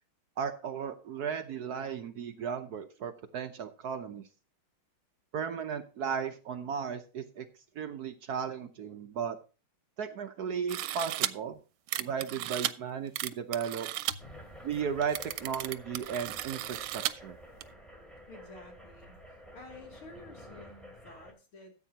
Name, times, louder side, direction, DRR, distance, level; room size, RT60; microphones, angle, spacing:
voice 1, 0.4-4.2 5.3-7.5 7.8-9.4 10.0-11.6 12.0-13.9 14.6-17.4, right 7 dB, 65° right, 8 dB, 1.0 m, -35 dB
sound 1, 10.7-11.3 11.9-12.7 13.2-14.1 14.7-14.8 15.0-17.1 17.6-17.7, right 14 dB, 90° right, 1.5 m, -34 dB
sound 2, 14.2-21.3, equal, ahead, 2.5 m, -50 dB
voice 2, 18.3-19.2 19.5-21.7, left 3 dB, 85° left, 1 dB, 3.7 m, -51 dB
13.5 x 8.3 x 2.9 m, 0.34 s
omnidirectional pair, 2.3 m